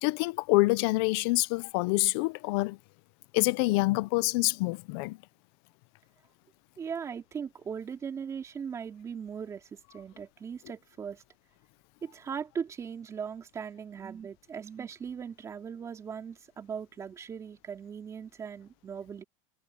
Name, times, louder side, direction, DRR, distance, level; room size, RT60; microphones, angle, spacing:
voice 1, 0.0-2.8 3.3-5.2, left 23 dB, 50° left, 0.7 m, -26 dB
voice 2, 6.8-11.2 12.0-19.2, right 7 dB, 20° right, 3.5 m, -39 dB
supercardioid pair, 165°, 17 cm